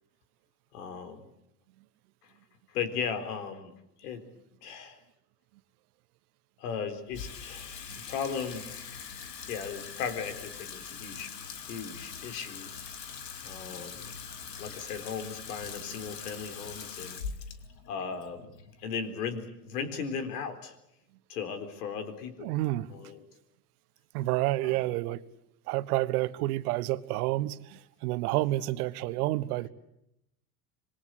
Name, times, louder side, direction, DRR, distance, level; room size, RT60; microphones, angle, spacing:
voice 1, 0.7-1.2 2.7-3.7 4.0-4.2 4.6-5.0 6.6-7.7 8.1-8.9 9.5-11.3 11.7-12.7 13.4-14.1 14.6-17.2 17.9-18.5 18.8-20.8 21.3-22.5 22.9-23.2 24.6-24.9, left 6 dB, 75° left, 4.0 m, -36 dB
Water tap faucet / Sink (filling or washing), 7.1-19.5, left 6 dB, 90° left, 2.1 m, -43 dB
voice 2, 22.4-22.9 24.1-25.2 25.7-29.7, right 17 dB, 65° right, 1.4 m, -29 dB
26.5 x 21.5 x 8.2 m
hypercardioid pair, 90°, 48 cm